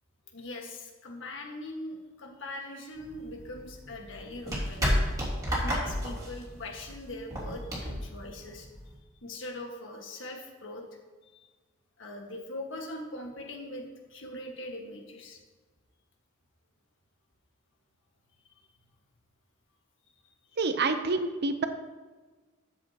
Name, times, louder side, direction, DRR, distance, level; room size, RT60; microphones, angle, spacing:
voice 1, 0.3-4.9 5.5-8.7 9.2-10.9 12.0-13.8 14.1-15.4, left 1 dB, 65° left, 2 dB, 1.6 m, -41 dB
sound 1, 3.0-8.9, equal, 20° right, 3.1 m, -32 dB
voice 2, 20.6-21.7, right 3 dB, 55° right, 8 dB, 0.7 m, -27 dB
13.0 x 7.4 x 2.9 m, 1.3 s
head